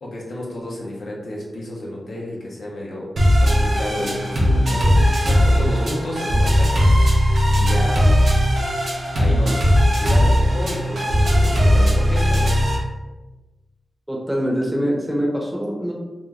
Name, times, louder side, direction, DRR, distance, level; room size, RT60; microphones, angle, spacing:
voice 1, 0.0-3.1 3.4-5.0 5.2-6.9 7.5-8.2 9.2-9.7 10.0-12.5, left 1 dB, 80° left, -4 dB, 0.7 m, -31 dB
sound 1, 3.2-12.8, equal, 75° right, 0.7 m, -17 dB
voice 2, 14.1-15.9, equal, 10° right, -2 dB, 0.9 m, -23 dB
2.5 x 2.3 x 3.1 m, 1.1 s
cardioid pair, 40°, 0 cm